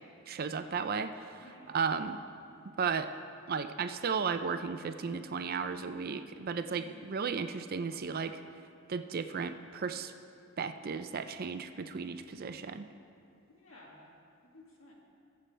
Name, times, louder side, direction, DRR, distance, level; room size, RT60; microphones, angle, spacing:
voice 1, 0.3-1.4 1.7-2.2 2.8-3.1 3.5-8.4 8.9-10.1 10.6-12.9, right 5 dB, 45° right, 9 dB, 0.5 m, -34 dB
voice 2, 1.4-1.8 6.7-7.0 13.5-14.1 14.5-14.9, left 1 dB, 70° left, -3 dB, 2.3 m, -55 dB
21.0 x 7.6 x 3.3 m, 2.6 s
head